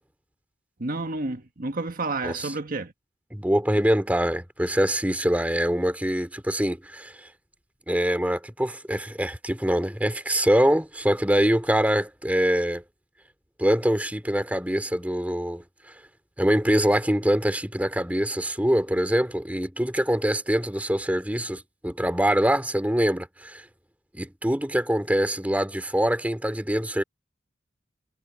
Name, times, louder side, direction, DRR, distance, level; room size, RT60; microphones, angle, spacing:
voice 1, 0.8-2.9, right 2 dB, 50° right, 1.5 m, -30 dB
voice 2, 3.3-7.3 7.9-12.8 13.6-15.6 16.4-23.6 24.1-27.0, equal, 10° right, 2.7 m, -24 dB
head